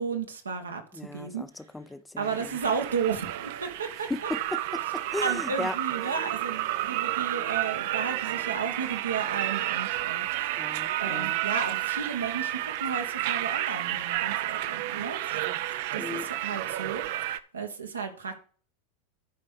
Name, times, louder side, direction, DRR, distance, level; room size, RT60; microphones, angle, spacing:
voice 1, 0.0-0.8 1.1-1.5 2.2-4.1 5.2-10.6 11.0-15.4 15.9-17.0 17.5-18.4, right 6 dB, 90° right, 1.6 m, -33 dB
voice 2, 0.9-2.6 4.1-5.8 10.6-11.4 16.0-16.3, left 2 dB, 10° left, 0.6 m, -36 dB
sound 1, 2.2-17.4, right 14 dB, 60° right, 0.7 m, -31 dB
9.3 x 4.7 x 6.6 m
hypercardioid pair, 95°, 0 cm